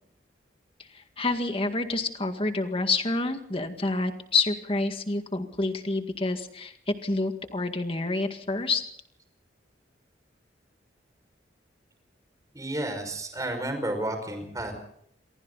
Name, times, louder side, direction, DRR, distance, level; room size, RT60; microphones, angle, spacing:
voice 1, 0.9-8.8, left 3 dB, 30° left, 6 dB, 2.0 m, -28 dB
voice 2, 12.5-14.7, right 1 dB, 20° right, 6 dB, 5.7 m, -31 dB
28.0 x 23.0 x 4.1 m, 0.68 s
head